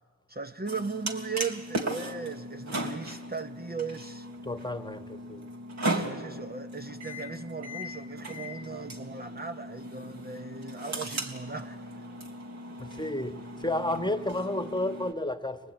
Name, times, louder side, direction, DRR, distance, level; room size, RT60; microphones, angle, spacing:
voice 1, 0.3-4.3 5.9-11.9, right 5 dB, 30° right, 1.1 m, -37 dB
sound 1, 0.7-15.1, right 1 dB, 60° right, 3.4 m, -37 dB
voice 2, 4.4-5.0 5.3-5.4 12.8-15.6, left 1 dB, 15° left, 1.5 m, -31 dB
25.0 x 19.0 x 9.1 m
cardioid pair, 45°, 32 cm